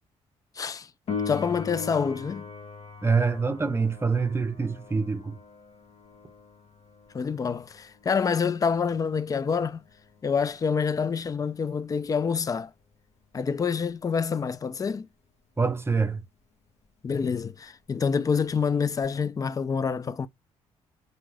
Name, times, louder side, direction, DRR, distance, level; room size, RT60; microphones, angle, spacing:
voice 1, 0.6-0.9 1.3-2.5 7.1-9.8 10.2-12.7 13.3-15.1 17.0-20.3, left 6 dB, 30° left, 0.3 m, -27 dB
Piano, 1.1-11.5 19.0-19.1, left 5 dB, 55° left, 0.8 m, -41 dB
voice 2, 3.0-5.4 15.6-16.2, right 4 dB, 20° right, 0.6 m, -25 dB
2.7 x 2.2 x 3.2 m
supercardioid pair, 70°, 13 cm